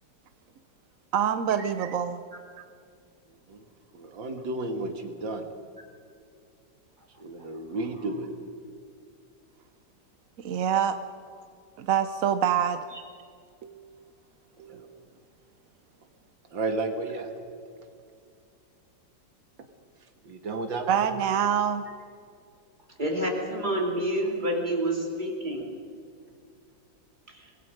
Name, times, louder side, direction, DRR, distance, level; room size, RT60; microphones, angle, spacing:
voice 1, 1.1-2.2 10.4-11.0 11.8-12.8 13.6-13.9 14.6-14.8 20.9-21.8, right 8 dB, 60° right, 10 dB, 0.9 m, -26 dB
voice 2, 3.9-5.5 7.2-8.3 14.7-14.8 16.5-17.3 20.2-21.0, right 2 dB, 80° right, 5 dB, 2.4 m, -32 dB
voice 3, 23.0-25.7, right 1 dB, 25° right, 0 dB, 3.2 m, -28 dB
24.0 x 21.5 x 5.2 m, 2.3 s
omnidirectional pair, 2.0 m